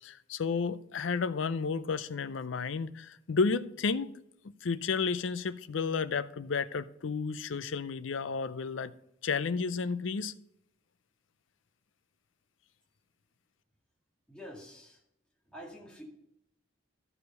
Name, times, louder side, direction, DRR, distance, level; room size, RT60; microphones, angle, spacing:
voice 1, 0.0-4.1 4.4-8.9 9.2-10.3, left 5 dB, 75° left, 15 dB, 0.5 m, -32 dB
voice 2, 14.3-15.0 15.5-16.0, equal, 5° left, -3 dB, 2.2 m, -47 dB
13.5 x 4.9 x 5.4 m, 0.80 s
head